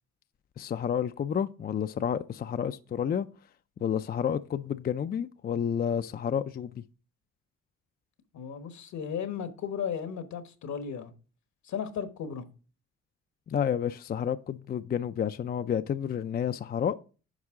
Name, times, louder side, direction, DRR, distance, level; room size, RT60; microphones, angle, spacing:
voice 1, 0.6-3.3 3.8-6.7 13.5-17.0, left 8 dB, 30° left, 0.4 m, -30 dB
voice 2, 8.3-11.1 11.6-12.5, left 7 dB, 65° left, 1.2 m, -35 dB
9.6 x 5.5 x 3.6 m
cardioid pair, 90°, 30 cm